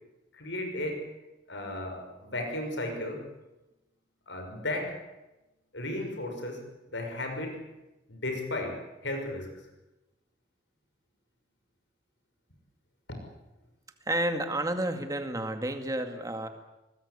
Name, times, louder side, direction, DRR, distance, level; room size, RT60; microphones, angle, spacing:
voice 1, 0.3-1.1 1.5-3.3 4.3-5.0 5.7-7.7 8.1-9.5 13.1-13.2, left 1 dB, 75° left, 4 dB, 6.3 m, -35 dB
voice 2, 14.1-16.5, right 1 dB, 20° right, 6 dB, 2.2 m, -30 dB
24.0 x 20.5 x 8.5 m, 1.0 s
head